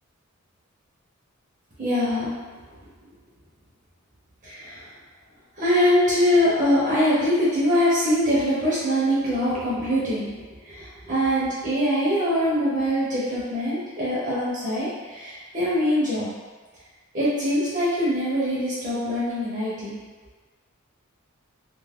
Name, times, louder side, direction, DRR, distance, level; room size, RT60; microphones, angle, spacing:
voice 1, 1.8-2.4 4.4-4.8 5.6-10.4 10.6-16.3 17.1-20.0, equal, 35° right, -10 dB, 0.7 m, -23 dB
2.4 x 2.3 x 3.5 m, 1.4 s
head